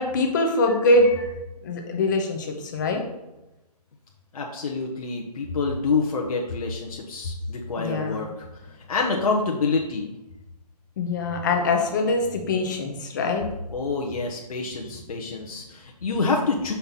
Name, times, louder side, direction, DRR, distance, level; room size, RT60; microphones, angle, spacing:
voice 1, 0.0-1.3 1.6-3.0 7.8-8.3 11.0-13.5, left 2 dB, 30° left, 3 dB, 0.9 m, -23 dB
voice 2, 4.3-8.5 8.9-10.1 13.7-16.7, left 4 dB, 60° left, 0 dB, 0.9 m, -27 dB
5.7 x 3.3 x 5.7 m, 0.99 s
hypercardioid pair, 160°, 21 cm